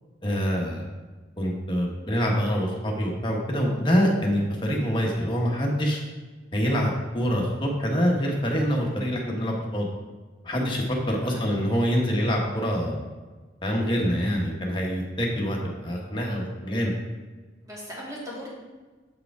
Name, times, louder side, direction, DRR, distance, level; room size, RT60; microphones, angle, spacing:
voice 1, 0.2-0.9 1.4-6.0 6.5-9.9 10.4-13.0 13.6-16.9, equal, 25° left, -1 dB, 1.1 m, -25 dB
voice 2, 11.1-11.4 17.6-18.5, equal, 20° right, -6 dB, 2.0 m, -38 dB
7.7 x 4.8 x 4.7 m, 1.3 s
head